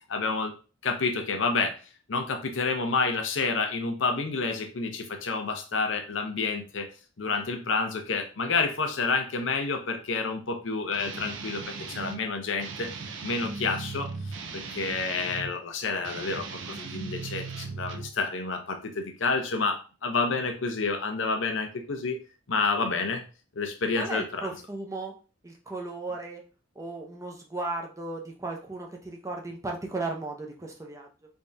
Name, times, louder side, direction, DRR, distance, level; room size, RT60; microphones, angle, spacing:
voice 1, 0.1-0.5 0.8-1.7 2.1-6.9 7.2-12.9 13.2-14.1 14.5-22.2 22.5-23.2 23.6-24.5, left 4 dB, 75° left, 5 dB, 0.7 m, -29 dB
Guitar, 10.9-12.2 12.6-15.5 16.0-18.2, right 4 dB, 75° right, 0.5 m, -38 dB
voice 2, 24.0-25.1 25.4-26.4 26.8-31.1, right 2 dB, 15° right, 1 dB, 0.6 m, -35 dB
3.6 x 3.3 x 2.6 m, 0.35 s
head